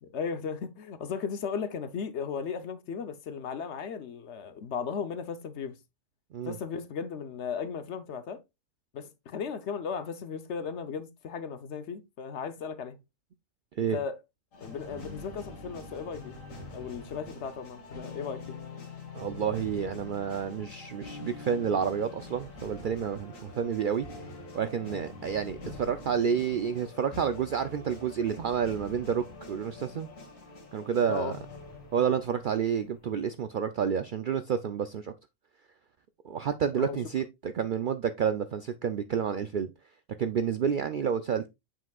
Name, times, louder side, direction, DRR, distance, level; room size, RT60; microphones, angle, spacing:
voice 1, 0.0-5.8 6.5-8.4 8.9-13.0 13.8-14.2 14.6-16.4 16.7-18.6 31.1-31.4 36.8-37.0, left 6 dB, 65° left, 1.0 m, -36 dB
sound 1, 14.5-33.1, left 3 dB, 80° left, 2.0 m, -45 dB
voice 2, 19.1-24.1 24.5-30.1 30.7-31.3 31.9-35.1 36.2-39.7 40.2-41.5, right 7 dB, 65° right, 0.5 m, -29 dB
7.7 x 5.8 x 2.3 m
omnidirectional pair, 1.3 m